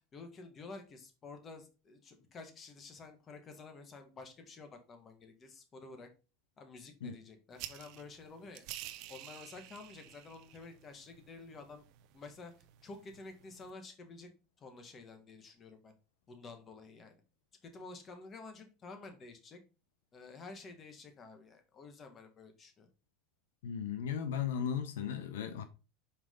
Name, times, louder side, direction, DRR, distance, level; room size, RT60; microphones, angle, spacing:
voice 1, 0.1-6.1 6.6-8.7 9.1-11.8 12.1-12.5 12.8-14.3 14.6-15.9 16.3-17.2 17.6-19.6 20.1-22.9, left 3 dB, 30° left, 1.6 m, -51 dB
sound 1, 7.5-13.7, right 13 dB, 55° right, 0.6 m, -51 dB
voice 2, 23.6-25.6, left 8 dB, 90° left, 0.7 m, -36 dB
5.7 x 4.7 x 3.8 m
supercardioid pair, 125°, 0 cm